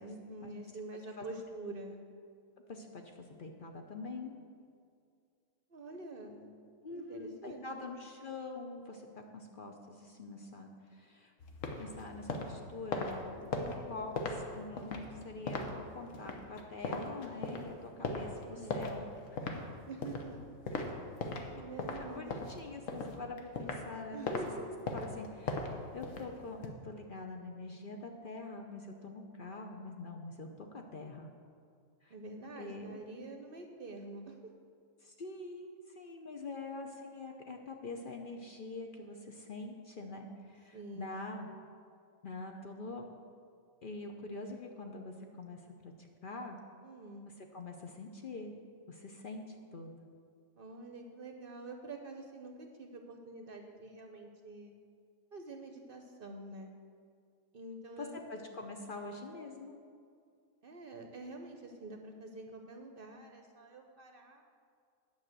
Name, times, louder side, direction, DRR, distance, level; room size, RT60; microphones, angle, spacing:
voice 1, 0.0-2.0 5.7-6.5 6.9-7.9 13.5-14.1 18.4-18.8 19.9-20.4 21.5-22.5 24.1-24.7 32.1-34.5 40.7-41.2 46.8-47.3 50.6-54.7 55.3-56.7 57.5-58.2 60.6-64.4, right 2 dB, 50° right, 4 dB, 0.8 m, -47 dB
voice 2, 2.7-4.4 6.8-9.1 9.3-11.3 11.8-19.1 22.0-24.4 24.9-25.6 25.9-31.3 32.0-32.1 32.6-33.0 35.0-41.5 42.2-43.1 43.8-45.9 46.2-46.6 47.4-48.6 48.9-49.9 58.0-59.8, left 3 dB, 50° left, 3 dB, 0.8 m, -45 dB
sound 1, 11.4-21.5 21.8-23.9 24.2-24.4 24.9-26.7, left 3 dB, 75° left, 1.3 m, -39 dB
9.5 x 5.7 x 7.5 m, 2.2 s
omnidirectional pair, 1.4 m